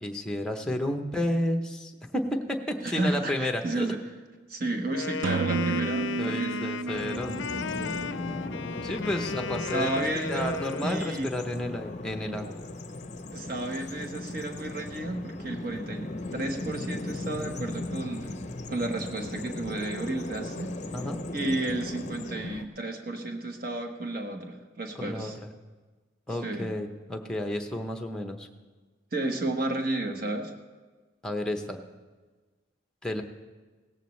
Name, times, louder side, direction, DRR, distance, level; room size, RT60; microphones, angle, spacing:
voice 1, 0.0-3.9 6.2-7.4 7.8-8.0 8.8-12.6 20.9-21.2 25.0-25.3 26.3-28.5 31.2-31.8 33.0-33.2, left 1 dB, 5° left, 4 dB, 0.8 m, -31 dB
voice 2, 2.8-4.0 4.5-6.7 9.6-11.3 13.3-18.4 18.7-20.7 21.3-25.4 26.4-26.7 29.1-30.5, right 2 dB, 50° right, 4 dB, 1.2 m, -32 dB
Wind instrument woodwind instrument, 4.9-11.2, left 5 dB, 70° left, 0.4 m, -35 dB
sound 1, 5.2-9.0, right 4 dB, 70° right, 0.4 m, -32 dB
Bird vocalization bird call bird song, 6.9-22.7, left 2 dB, 35° left, 0.6 m, -37 dB
17.0 x 14.0 x 3.2 m, 1.3 s
head